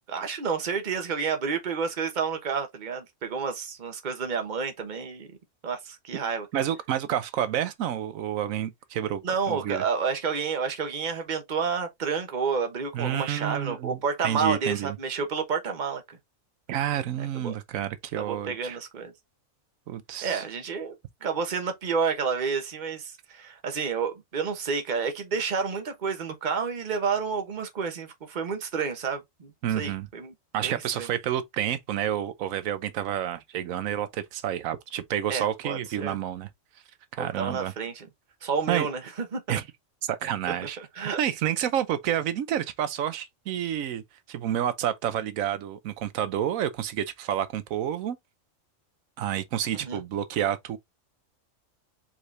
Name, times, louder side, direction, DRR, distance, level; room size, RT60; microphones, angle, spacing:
voice 1, 0.1-5.3 5.6-6.5 9.2-16.2 17.2-17.5 18.1-19.1 20.2-21.0 21.2-30.3 30.6-31.1 35.3-36.2 37.2-38.1 38.4-39.6 40.8-41.2 49.8-50.0, right 5 dB, 40° right, 1.1 m, -30 dB
voice 2, 6.5-9.2 9.5-9.8 12.9-14.0 14.2-15.0 16.7-18.8 19.9-20.4 29.6-30.1 30.5-36.5 37.1-37.7 38.7-38.9 39.5-39.6 40.0-40.8 41.2-44.0 44.3-48.2 49.2-50.8, right 10 dB, 90° right, 1.1 m, -29 dB
4.8 x 4.3 x 2.6 m
omnidirectional pair, 1.4 m